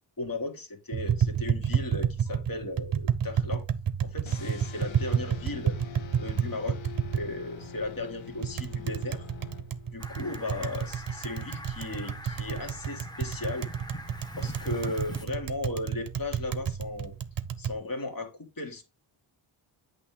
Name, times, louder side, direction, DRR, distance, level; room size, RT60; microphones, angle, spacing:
voice 1, 0.2-3.6 4.0-5.8 6.2-6.8 7.1-9.3 9.9-13.7 14.4-17.1 17.6-18.8, left 2 dB, 45° left, 1.9 m, -36 dB
Tap, 0.9-17.7, right 8 dB, 45° right, 0.7 m, -31 dB
sound 1, 4.3-10.1, left 9 dB, 65° left, 1.2 m, -45 dB
Fowl, 10.0-15.2, left 1 dB, 10° left, 1.1 m, -43 dB
8.4 x 3.2 x 4.8 m
wide cardioid pair, 115°, 49 cm